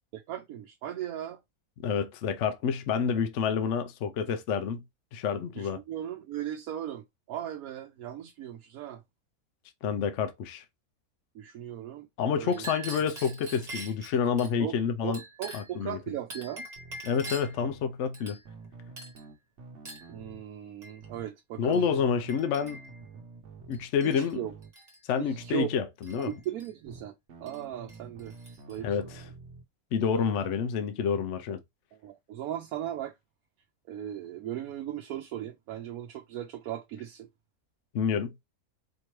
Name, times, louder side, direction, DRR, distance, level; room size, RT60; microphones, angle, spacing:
voice 1, 0.1-1.4 5.6-9.0 11.3-12.1 12.4-12.6 14.6-14.8 15.0-16.7 20.1-21.9 24.0-24.5 25.2-25.7 26.2-27.1 27.4-28.3 28.7-28.9 32.0-33.1 33.9-37.3, right 11 dB, 80° right, 1.1 m, -37 dB
voice 2, 1.8-4.8 5.1-5.8 9.8-10.6 12.2-15.2 15.5-16.0 17.0-18.4 21.6-22.8 23.7-24.5 25.1-26.3 28.8-29.3 29.9-31.6 37.9-38.3, left 6 dB, 65° left, 0.8 m, -28 dB
Chink clink, 12.5-14.5 15.1-15.8 16.3-17.6 18.1-18.7 19.0-19.3 19.9-20.1 20.8-21.0 21.7-21.9 22.3-23.0 23.7-24.3 24.6-25.0 26.0-26.7 27.5-27.6 27.9-28.8, right 2 dB, 30° right, 1.2 m, -44 dB
sound 1, 16.7-17.0 17.6-17.9 18.5-20.4 21.0-21.3 21.9-23.9 24.4-24.7 25.3-25.6 26.2-26.4 26.9-29.6, right 3 dB, 55° right, 1.0 m, -48 dB
4.4 x 2.9 x 3.1 m
omnidirectional pair, 1.6 m